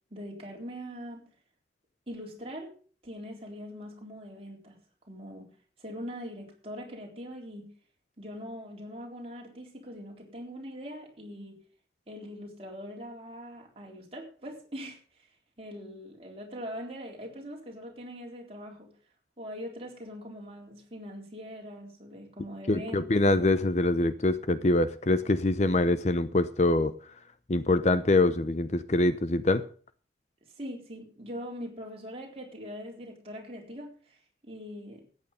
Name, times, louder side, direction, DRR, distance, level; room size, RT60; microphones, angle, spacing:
voice 1, 0.1-1.3 2.1-2.7 3.0-4.8 5.1-5.5 5.8-7.7 8.2-11.6 12.1-15.0 15.6-18.9 19.4-23.4 30.6-35.0, equal, 30° right, -1 dB, 3.8 m, -42 dB
voice 2, 22.7-26.9 27.5-29.6, left 2 dB, 40° left, 13 dB, 0.6 m, -24 dB
13.5 x 9.3 x 5.6 m, 0.43 s
head